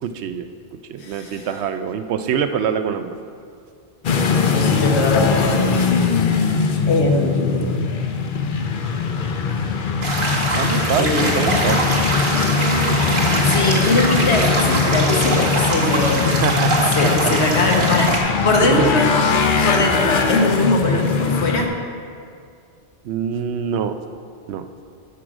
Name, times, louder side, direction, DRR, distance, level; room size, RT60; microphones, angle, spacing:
voice 1, 0.0-0.5 0.9-3.1 10.6-12.0 12.8-13.0 16.4-16.9 17.2-17.3 18.1-18.2 18.6-18.9 23.0-24.0 24.5-24.6, right 7 dB, 80° right, 9 dB, 0.9 m, -24 dB
voice 2, 1.0-1.5 4.4-5.8 6.9-7.9 9.5-9.6 11.0-11.3 13.4-16.6 16.9-19.2 19.6-21.7, left 2 dB, 80° left, 1 dB, 1.4 m, -21 dB
sound 1, 4.0-21.6, left 5 dB, 55° left, 0.8 m, -20 dB
sound 2, 10.0-18.2, right 2 dB, 50° right, 1.5 m, -23 dB
11.5 x 6.1 x 5.0 m, 2.3 s
omnidirectional pair, 1.1 m